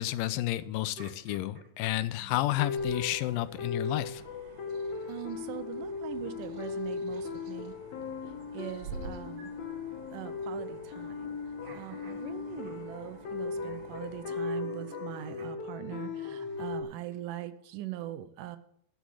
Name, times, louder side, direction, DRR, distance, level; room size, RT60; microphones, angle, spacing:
voice 1, 0.0-4.2, left 15 dB, 85° left, 15 dB, 2.3 m, -31 dB
sound 1, 0.7-2.8 3.8-5.2 6.1-7.7 9.4-9.8 11.6-12.9 13.1-13.3 13.6-17.1, right 1 dB, 40° right, 2.0 m, -52 dB
sound 2, 2.4-16.8, left 5 dB, 65° left, 2.3 m, -38 dB
sound 3, 2.8-14.3, right 4 dB, 60° right, 2.4 m, -50 dB
voice 2, 5.1-7.7 8.5-9.5 10.1-11.3 11.7-18.6, right 13 dB, 80° right, 11 dB, 2.2 m, -41 dB
12.0 x 6.2 x 7.7 m, 0.69 s
omnidirectional pair, 3.9 m